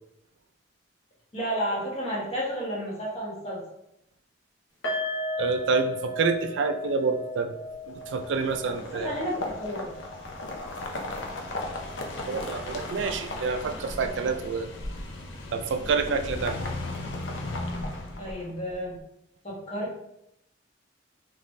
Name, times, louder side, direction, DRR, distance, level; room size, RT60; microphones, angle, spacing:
voice 1, 1.3-3.6 8.8-9.9 13.4-13.8 14.2-14.4 18.2-18.9 19.4-20.0, equal, 35° left, -5 dB, 1.4 m, -32 dB
sound 1, 4.8-12.0 12.3-12.5 12.9-13.0, left 1 dB, 70° left, 1.2 m, -36 dB
voice 2, 5.4-7.5 7.9-9.1 12.3-14.7 15.5-16.5, right 4 dB, 75° right, 7 dB, 0.4 m, -28 dB
sound 2, 7.9-18.7, left 2 dB, 85° left, 0.7 m, -36 dB
4.0 x 3.2 x 3.2 m, 0.81 s
head